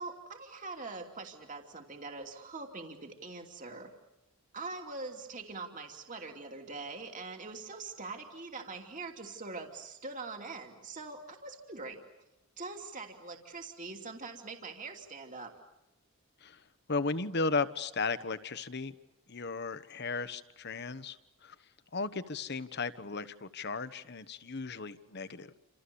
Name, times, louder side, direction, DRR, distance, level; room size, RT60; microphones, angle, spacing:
voice 1, 0.0-3.9 4.5-12.0 12.6-15.5, right 3 dB, 35° right, 3 dB, 2.9 m, -43 dB
voice 2, 16.9-18.9 19.3-21.5 21.9-25.6, left 4 dB, 50° left, 12 dB, 1.2 m, -35 dB
29.5 x 27.5 x 7.1 m, 0.90 s
head